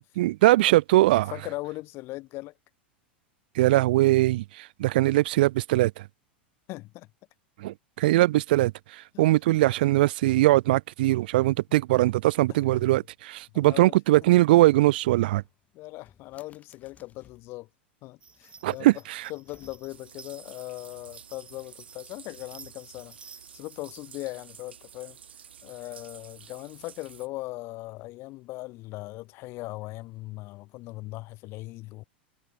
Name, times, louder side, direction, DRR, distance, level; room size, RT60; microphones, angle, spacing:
voice 1, 0.2-1.3 3.6-6.0 7.6-15.4 18.6-19.2, right 17 dB, 60° right, 0.6 m, -21 dB
voice 2, 1.3-2.5 6.7-7.1 9.1-9.2 12.5-12.9 13.5-13.9 15.7-17.7 18.0-19.0 19.3-25.2 25.6-32.0, left 20 dB, 45° left, 1.1 m, -39 dB
sound 1, 15.2-17.5 18.2-20.2, left 7 dB, 25° left, 6.3 m, -60 dB
sound 2, 18.2-24.2, right 5 dB, 20° right, 4.9 m, -52 dB
sound 3, 19.9-27.3, right 8 dB, 75° right, 3.9 m, -50 dB
figure-of-eight pair, 85°, 6 cm